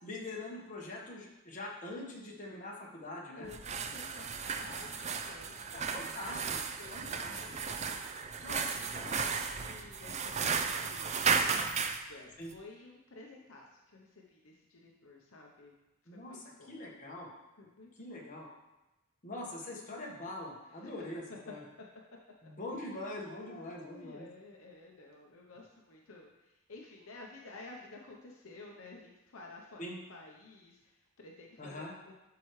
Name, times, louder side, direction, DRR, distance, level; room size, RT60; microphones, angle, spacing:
voice 1, 0.0-3.5 5.7-7.5 8.4-9.4 12.4-12.5 16.1-17.3 18.0-18.5 19.2-21.6 22.4-24.3 29.8-30.0 31.6-31.9, left 1 dB, 35° left, -2 dB, 1.4 m, -43 dB
voice 2, 3.3-6.2 6.8-8.9 9.6-11.7 12.1-15.7 16.1-16.8 17.6-18.3 20.7-21.1 23.2-29.8 30.1-32.1, left 3 dB, 70° left, 0 dB, 0.8 m, -53 dB
sound 1, 3.5-12.0, right 5 dB, 30° right, 0.4 m, -34 dB
11.5 x 4.7 x 3.2 m, 0.99 s
head